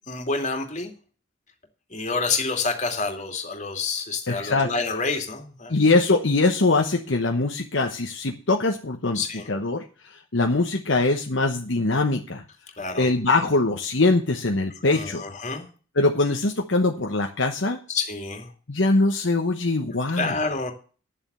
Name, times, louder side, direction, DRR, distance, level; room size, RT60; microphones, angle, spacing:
voice 1, 0.1-0.9 1.9-5.7 9.1-9.4 12.8-13.1 14.9-15.7 17.9-18.5 20.2-20.7, left 4 dB, 35° left, 3 dB, 2.7 m, -28 dB
voice 2, 4.3-4.7 5.7-9.9 10.3-12.4 13.0-15.2 15.9-17.8 18.7-20.3, left 2 dB, 60° left, 3 dB, 1.1 m, -22 dB
10.5 x 7.5 x 6.9 m, 0.38 s
head